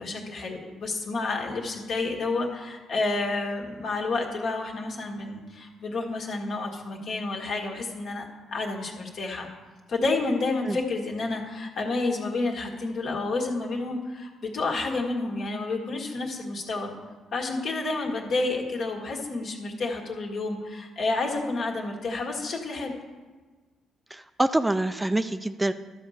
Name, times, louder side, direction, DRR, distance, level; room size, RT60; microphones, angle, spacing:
voice 1, 0.0-9.5 9.9-16.9 17.3-22.9, left 3 dB, 65° left, 0 dB, 1.7 m, -30 dB
voice 2, 24.1-25.7, right 1 dB, 10° right, 10 dB, 0.4 m, -25 dB
12.0 x 4.3 x 6.6 m, 1.3 s
supercardioid pair, 60°, 0 cm